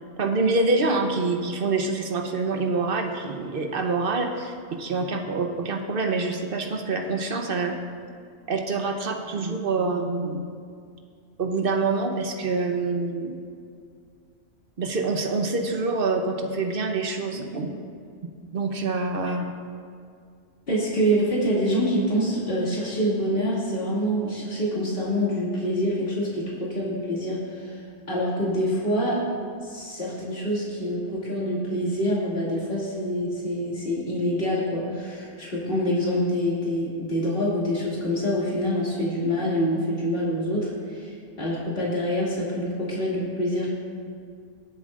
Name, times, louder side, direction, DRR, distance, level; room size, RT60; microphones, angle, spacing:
voice 1, 0.2-7.8 8.5-10.4 11.4-13.4 14.8-17.7 18.5-19.5, right 3 dB, 50° right, 4 dB, 1.0 m, -26 dB
voice 2, 20.7-27.8 28.1-29.2 29.6-43.7, equal, 50° left, -7 dB, 2.7 m, -26 dB
21.5 x 7.9 x 2.5 m, 2.2 s
omnidirectional pair, 1.3 m